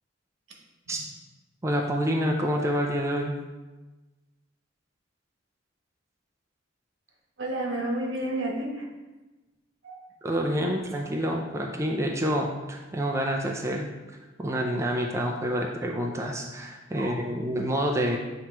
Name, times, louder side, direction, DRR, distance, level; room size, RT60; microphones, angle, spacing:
voice 1, 1.6-3.3 10.2-13.9 14.4-18.2, equal, 15° right, 0 dB, 0.4 m, -27 dB
voice 2, 7.4-8.9 9.8-10.0 17.0-17.2, right 1 dB, 75° right, -1 dB, 1.2 m, -31 dB
7.7 x 3.0 x 4.4 m, 1.2 s
head